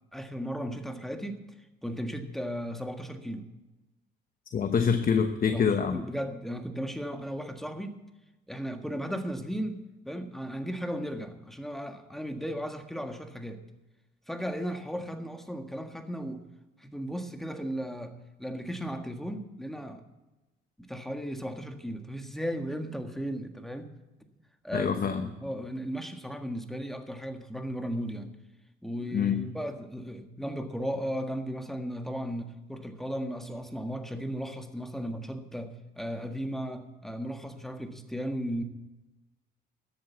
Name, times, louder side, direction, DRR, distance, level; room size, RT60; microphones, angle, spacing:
voice 1, 0.1-1.4 1.8-3.5 5.5-8.0 8.5-13.6 14.3-16.4 16.8-20.0 20.8-23.9 24.6-24.9 25.2-28.3 28.8-38.6, equal, ahead, 5 dB, 1.6 m, -36 dB
voice 2, 4.5-6.0 24.7-25.3 29.1-29.5, left 6 dB, 45° left, 7 dB, 1.0 m, -26 dB
13.0 x 8.0 x 8.2 m, 1.1 s
cardioid pair, 90°, 20 cm